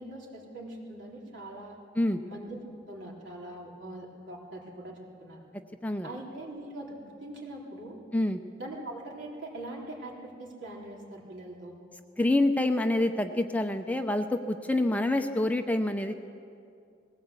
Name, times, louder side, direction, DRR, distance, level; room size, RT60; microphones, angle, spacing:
voice 1, 0.0-1.8 2.2-2.6 2.9-5.4 6.0-8.0 8.6-11.8, right 1 dB, 70° right, -3 dB, 3.8 m, -42 dB
voice 2, 12.2-16.2, left 1 dB, 10° left, 6 dB, 0.7 m, -27 dB
20.0 x 17.0 x 8.2 m, 2.5 s
head